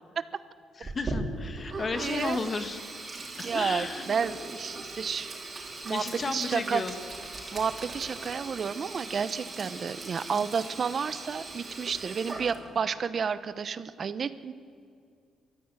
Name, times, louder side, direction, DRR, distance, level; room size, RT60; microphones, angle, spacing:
voice 1, 0.8-2.8 3.5-4.1 5.9-6.9 10.3-10.5, left 3 dB, 40° left, 8 dB, 1.6 m, -33 dB
Sink (filling or washing), 0.8-12.8, right 2 dB, 30° right, 4.5 m, -39 dB
voice 2, 2.0-2.4 3.4-5.3 5.8-6.8 7.5-14.5, right 6 dB, 45° right, 14 dB, 1.0 m, -31 dB
24.0 x 14.0 x 9.0 m, 2.3 s
cardioid pair, 90°, 0 cm